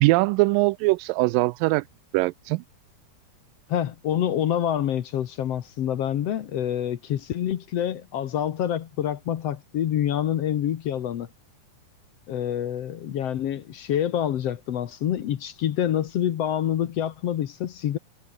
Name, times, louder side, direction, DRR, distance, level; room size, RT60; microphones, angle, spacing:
voice 1, 0.0-1.8 2.1-2.6, right 22 dB, 85° right, 2.0 m, -21 dB
voice 2, 3.7-11.3 12.3-18.0, left 10 dB, 65° left, 1.6 m, -27 dB
omnidirectional pair, 4.4 m